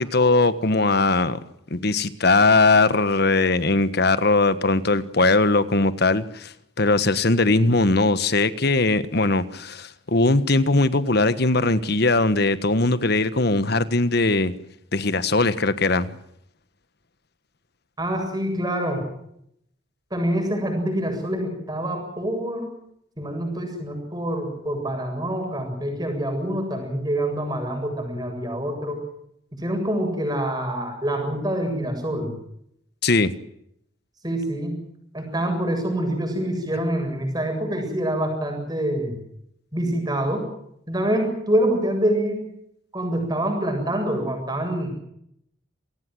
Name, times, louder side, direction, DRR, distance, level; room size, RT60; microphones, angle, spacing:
voice 1, 0.0-1.4 1.7-14.5 14.9-16.1 33.0-33.3, left 3 dB, 55° left, 14 dB, 1.4 m, -20 dB
voice 2, 18.0-19.0 20.1-22.7 23.2-29.0 29.6-32.3 34.2-34.8 35.1-39.2 39.7-40.4 40.9-42.4 42.9-44.9, right 1 dB, 20° right, 3 dB, 7.6 m, -26 dB
27.0 x 18.5 x 7.9 m, 0.74 s
head